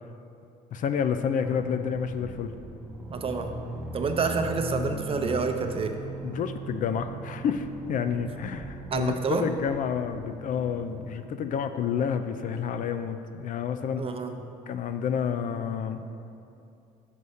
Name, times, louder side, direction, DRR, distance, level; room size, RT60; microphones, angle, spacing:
voice 1, 0.7-2.5 6.2-14.0 14.7-16.0, left 7 dB, 50° left, 9 dB, 0.4 m, -29 dB
sound 1, 1.4-11.1, right 1 dB, 5° right, 0.9 m, -39 dB
voice 2, 3.1-3.5 3.9-6.0 8.9-9.5 14.0-14.3, right 4 dB, 35° right, 6 dB, 0.6 m, -28 dB
5.5 x 5.4 x 6.4 m, 2.6 s
cardioid pair, 110°, 17 cm